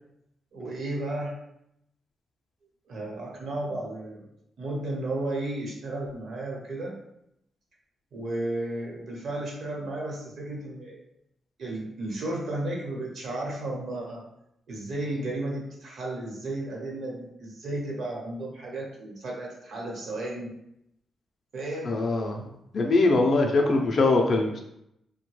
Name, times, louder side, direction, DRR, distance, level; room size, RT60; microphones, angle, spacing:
voice 1, 0.5-1.3 2.9-4.2 4.6-7.0 8.1-11.0 11.6-14.2 14.7-20.5 21.5-22.0, right 1 dB, 60° right, -2 dB, 0.9 m, -33 dB
voice 2, 21.9-22.4 22.7-24.6, left 2 dB, 40° left, 0 dB, 0.4 m, -22 dB
3.2 x 2.1 x 3.1 m, 0.79 s
wide cardioid pair, 140°, 0 cm